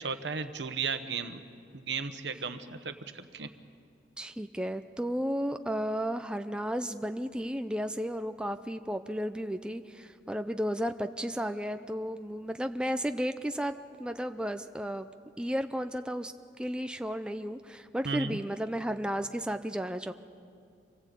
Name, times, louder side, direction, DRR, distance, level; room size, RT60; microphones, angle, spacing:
voice 1, 0.0-1.4 1.7-3.5 18.0-18.4, right 5 dB, 75° right, 9 dB, 1.2 m, -35 dB
voice 2, 4.2-13.7 14.0-15.1 15.4-20.1, equal, 5° right, 7 dB, 0.5 m, -33 dB
26.0 x 17.5 x 8.4 m, 2.4 s
head